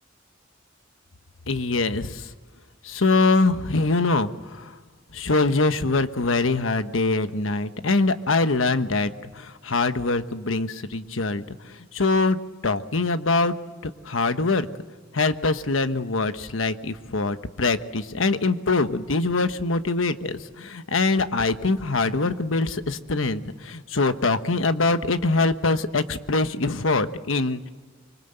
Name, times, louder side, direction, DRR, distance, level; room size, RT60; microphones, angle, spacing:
voice 1, 1.5-2.3 2.8-4.8 5.1-12.4 12.6-13.5 14.0-14.7 15.1-27.7, left 3 dB, 90° left, 10 dB, 1.2 m, -23 dB
25.0 x 24.5 x 8.0 m, 1.5 s
head